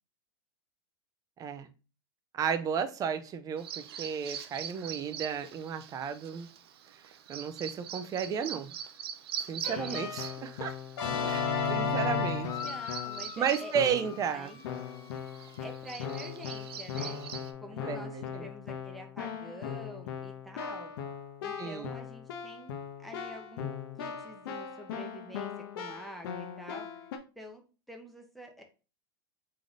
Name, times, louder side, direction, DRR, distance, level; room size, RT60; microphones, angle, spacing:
voice 1, 1.4-1.7 2.3-6.5 7.3-8.7 9.4-10.7 11.2-12.5 13.4-14.5 17.8-18.5 21.6-21.9, right 7 dB, 30° right, 0.6 m, -33 dB
Bird vocalization bird call bird song, 3.6-17.5, right 9 dB, 80° right, 0.6 m, -43 dB
Keyboard (musical), 9.6-13.3 13.7-14.2 14.6-27.2, left 6 dB, 70° left, 0.9 m, -37 dB
voice 2, 9.6-10.1 12.6-14.8 15.6-17.2 17.6-20.9 21.4-23.7 24.0-26.9 27.4-28.6, equal, ahead, 0.9 m, -47 dB
sound 1, 12.4-15.7, left 10 dB, 25° left, 0.3 m, -44 dB
3.8 x 3.3 x 3.8 m
hypercardioid pair, 115°, 13 cm